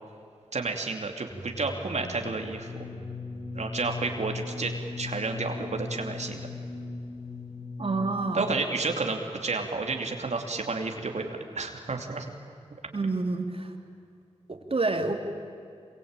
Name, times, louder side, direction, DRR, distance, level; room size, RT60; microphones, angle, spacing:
voice 1, 0.5-2.7 3.5-4.7 5.0-6.5 8.3-12.4, right 3 dB, 75° right, 3 dB, 2.8 m, -31 dB
sound 1, 1.3-9.0, left 3 dB, 45° left, 2.7 m, -39 dB
voice 2, 7.8-8.5 12.9-13.7 14.5-15.1, right 3 dB, 55° right, 4 dB, 3.1 m, -28 dB
26.0 x 23.0 x 9.0 m, 2.4 s
wide cardioid pair, 65°, 12 cm